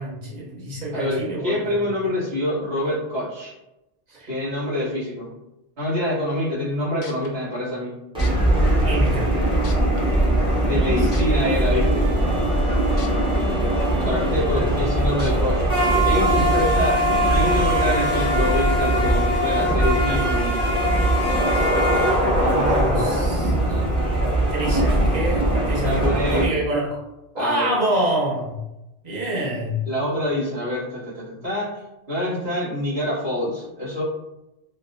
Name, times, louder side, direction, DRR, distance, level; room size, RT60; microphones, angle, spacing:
voice 1, 0.0-1.8 4.1-4.3 8.8-9.3 10.9-11.1 14.6-14.7 22.7-23.8 24.2-27.0 27.3-28.6 29.0-29.9, right 1 dB, 45° right, -5 dB, 0.9 m, -27 dB
voice 2, 0.9-3.5 4.3-5.3 5.8-7.9 10.6-12.1 14.0-15.6 16.1-20.6 22.4-24.2 25.8-26.5 27.4-27.8 29.9-34.0, left 1 dB, 70° right, -9 dB, 1.9 m, -26 dB
sound 1, 7.0-7.3 8.2-8.3 9.1-9.2 9.6-10.0 11.1-11.2 13.0-13.1 13.6-13.7 15.2-15.3 16.1-16.2, left 4 dB, 60° left, 0.7 m, -39 dB
sound 2, 8.1-26.4, right 1 dB, 5° right, 0.7 m, -20 dB
Trumpet, 11.6-18.5, left 4 dB, 85° right, 1.0 m, -37 dB
3.7 x 2.0 x 2.7 m, 0.95 s
omnidirectional pair, 1.1 m